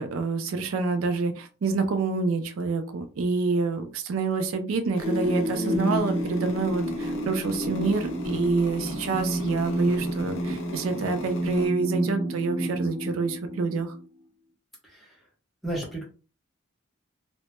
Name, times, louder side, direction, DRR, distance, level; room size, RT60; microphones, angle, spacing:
voice 1, 0.0-14.0, right 4 dB, 70° right, 7 dB, 0.4 m, -27 dB
sound 1, 4.9-11.7, left 3 dB, 60° left, 0.6 m, -41 dB
sound 2, 5.0-14.0, right 1 dB, 35° right, 0.9 m, -30 dB
voice 2, 14.8-15.2 15.6-16.0, right 1 dB, ahead, -4 dB, 0.8 m, -33 dB
2.1 x 2.0 x 2.9 m, 0.34 s
head